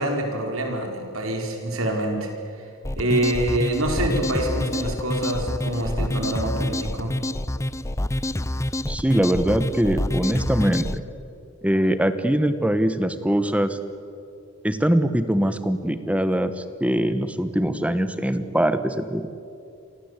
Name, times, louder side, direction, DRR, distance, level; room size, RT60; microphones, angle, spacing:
voice 1, 0.0-2.3 3.0-7.2, right 1 dB, 80° right, 2 dB, 5.0 m, -26 dB
sound 1, 2.8-11.0, left 1 dB, 15° left, 0.7 m, -27 dB
voice 2, 8.8-11.0 11.6-13.8 14.6-19.3, right 1 dB, 5° right, 11 dB, 1.3 m, -22 dB
29.5 x 24.0 x 8.3 m, 2.6 s
head